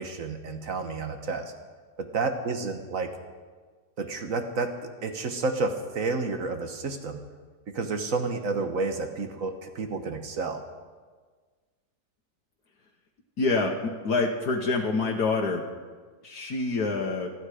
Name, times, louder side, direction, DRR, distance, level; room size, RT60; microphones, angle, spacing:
voice 1, 0.0-1.5 2.0-3.2 4.0-7.2 7.7-10.6, right 3 dB, 55° right, 6 dB, 1.5 m, -30 dB
voice 2, 13.4-13.7 14.0-15.6 16.2-17.3, left 3 dB, 70° left, 1 dB, 1.7 m, -26 dB
27.0 x 9.7 x 5.0 m, 1.5 s
omnidirectional pair, 1.8 m